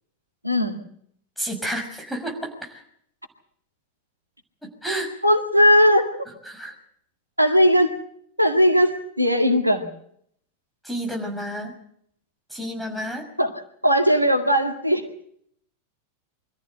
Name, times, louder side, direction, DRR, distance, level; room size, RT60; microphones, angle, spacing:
voice 1, 0.4-0.8 5.2-6.2 7.4-7.9 8.4-9.9 13.4-13.5 13.8-15.0, equal, 90° right, 6 dB, 2.0 m, -18 dB
voice 2, 1.4-2.8 4.8-5.1 6.5-6.7 10.8-11.7 12.5-13.2, right 1 dB, ahead, 3 dB, 5.8 m, -30 dB
24.0 x 14.5 x 7.9 m, 0.68 s
figure-of-eight pair, 90°, 0 cm